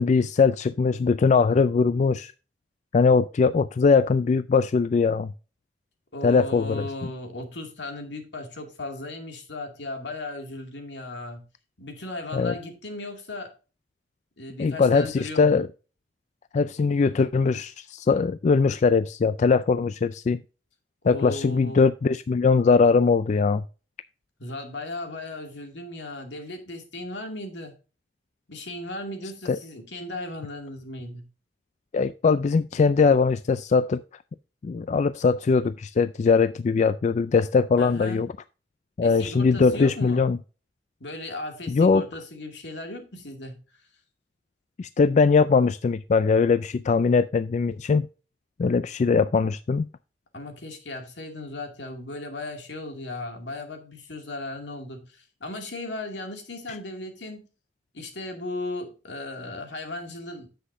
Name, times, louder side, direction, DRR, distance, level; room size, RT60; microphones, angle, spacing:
voice 1, 0.0-2.3 2.9-5.3 6.2-6.9 12.3-12.5 14.6-15.7 16.5-20.4 21.1-23.6 29.5-29.6 31.9-34.0 34.6-38.3 39.0-40.4 41.7-42.1 44.8-48.1 48.6-49.9, left 4 dB, 40° left, 0.3 m, -21 dB
voice 2, 6.1-11.4 11.8-13.5 14.4-15.6 21.0-21.8 24.4-27.7 28.5-31.3 37.8-38.3 39.0-40.3 41.0-43.6 50.3-57.5 57.9-60.5, left 2 dB, 80° left, 2.4 m, -36 dB
9.9 x 7.7 x 2.6 m
head